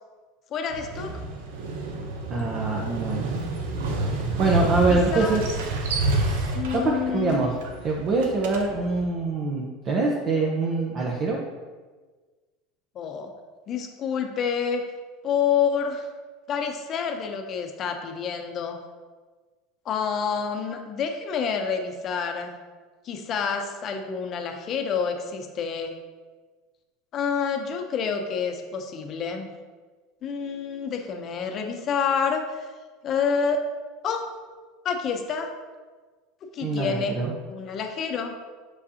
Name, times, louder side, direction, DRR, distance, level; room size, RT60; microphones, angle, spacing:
voice 1, 0.5-1.2 4.9-5.4 6.5-7.4 12.9-13.3 13.7-14.9 15.2-16.1 16.5-18.8 19.8-22.5 23.0-25.9 27.1-29.5 30.2-32.4 33.0-33.6 34.0-34.3 34.8-35.5 36.5-37.2 37.5-38.3, left 6 dB, 40° left, 5 dB, 0.7 m, -28 dB
Motorcycle, 0.7-9.0, right 2 dB, 85° right, 0.8 m, -29 dB
voice 2, 2.3-3.3 4.4-5.4 6.1-7.5 7.8-11.4 36.6-37.3, right 3 dB, 40° right, -2 dB, 0.8 m, -25 dB
6.5 x 5.0 x 2.8 m, 1.4 s
supercardioid pair, 125°, 0 cm